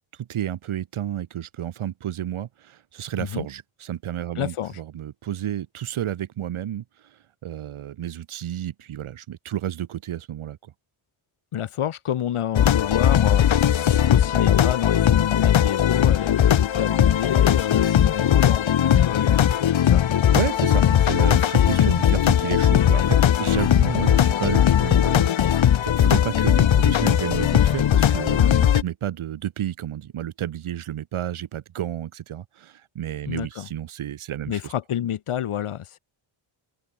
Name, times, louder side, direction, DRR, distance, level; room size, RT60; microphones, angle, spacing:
voice 1, 0.2-6.8 7.4-10.6 20.3-34.6, right 11 dB, 80° right, 2.2 m, -31 dB
voice 2, 4.4-4.8 11.5-13.5 14.0-20.1 33.3-33.7 34.5-36.0, left 10 dB, 85° left, 7.2 m, -28 dB
sound 1, 12.5-28.8, left 10 dB, 65° left, 1.9 m, -19 dB
open air
cardioid pair, 100°, 49 cm